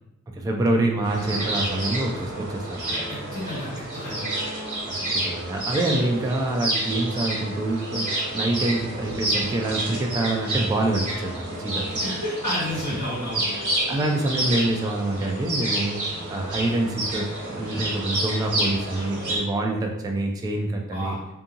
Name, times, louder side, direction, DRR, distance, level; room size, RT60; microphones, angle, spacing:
voice 1, 0.3-3.0 4.9-11.8 13.9-21.1, right 2 dB, 15° right, 2 dB, 0.3 m, -26 dB
sound 1, 1.0-19.4, right 1 dB, 90° right, 1.1 m, -29 dB
voice 2, 3.1-4.2 11.9-13.5 20.9-21.2, left 1 dB, 90° left, -8 dB, 1.4 m, -31 dB
2.7 x 2.6 x 2.4 m, 0.91 s
wide cardioid pair, 120°, 30 cm